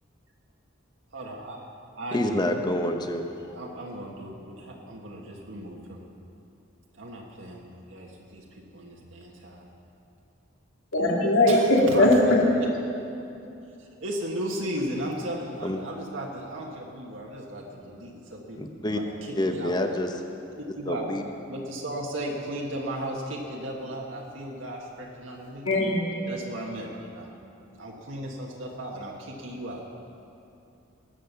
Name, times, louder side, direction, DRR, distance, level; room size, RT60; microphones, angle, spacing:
voice 1, 1.1-1.6 2.0-2.5 3.5-6.0 6.9-9.7 11.5-12.1 13.8-19.7 20.7-21.1 21.5-25.7 26.3-27.3 27.8-29.8, right 1 dB, 70° right, -2 dB, 1.6 m, -36 dB
voice 2, 2.1-3.5 15.6-15.8 18.5-19.0 19.3-20.1 20.9-21.2, left 1 dB, 20° left, 5 dB, 1.0 m, -27 dB
voice 3, 10.9-12.4 25.6-26.3, left 1 dB, 80° left, -2 dB, 2.4 m, -20 dB
20.5 x 7.7 x 6.8 m, 2.7 s
head